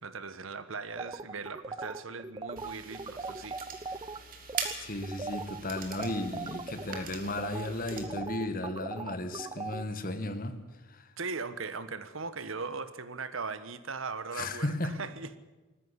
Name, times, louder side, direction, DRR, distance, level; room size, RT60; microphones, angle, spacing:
voice 1, 0.0-3.6 3.9-4.0 11.2-15.4, right 4 dB, 70° right, 1.3 m, -39 dB
sound 1, 1.0-4.2 4.5-4.7 5.0-9.8, right 3 dB, 20° right, 0.6 m, -39 dB
sound 2, 2.6-8.0, right 6 dB, 40° right, 2.9 m, -42 dB
voice 2, 4.8-10.5 10.9-11.1 14.3-15.0, left 2 dB, 40° left, 1.7 m, -35 dB
20.0 x 14.5 x 10.0 m
head